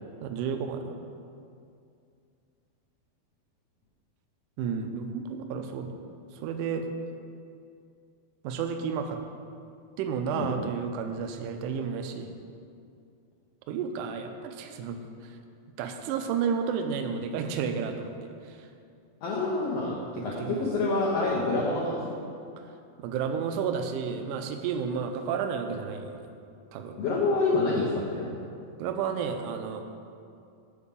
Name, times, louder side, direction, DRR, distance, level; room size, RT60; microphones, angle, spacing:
voice 1, 0.2-1.0 4.6-5.9 6.4-6.9 8.4-9.2 10.0-12.3 13.7-15.0 15.8-18.7 20.4-20.7 23.0-26.3 26.7-27.0 28.8-29.8, right 6 dB, 80° right, 6 dB, 1.9 m, -31 dB
voice 2, 19.2-22.2 27.0-27.8 28.1-28.4, left 3 dB, 85° left, -5 dB, 1.4 m, -27 dB
7.2 x 4.6 x 6.8 m, 2.4 s
omnidirectional pair, 4.2 m